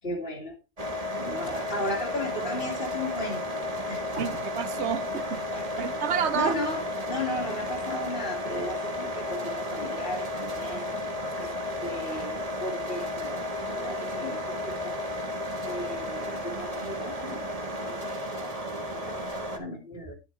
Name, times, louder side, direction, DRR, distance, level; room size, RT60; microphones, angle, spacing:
voice 1, 0.0-0.6 1.2-3.6 3.9-4.2 5.5-5.6 5.9-10.9 11.4-11.5 11.8-15.0 15.6-17.4 17.8-18.1 18.4-18.5 18.9-20.1, left 1 dB, 50° left, 2.4 m, -35 dB
sound 1, 0.8-19.6, left 1 dB, 30° right, 1.6 m, -33 dB
voice 2, 4.1-5.4 5.8-6.6 11.4-11.5, right 8 dB, 65° right, 0.9 m, -29 dB
11.5 x 7.8 x 3.2 m
omnidirectional pair, 1.3 m